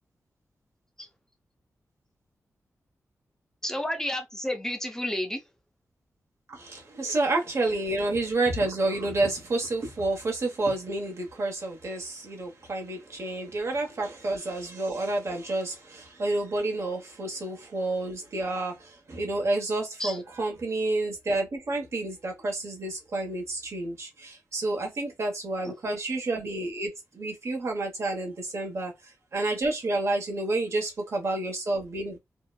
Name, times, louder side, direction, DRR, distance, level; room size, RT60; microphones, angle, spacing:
voice 1, 3.6-5.4 20.0-20.2 25.6-25.7, left 1 dB, 10° left, 0.6 m, -31 dB
voice 2, 6.5-32.2, right 2 dB, 55° right, 0.9 m, -29 dB
2.7 x 2.1 x 2.2 m
cardioid pair, 80°, 6 cm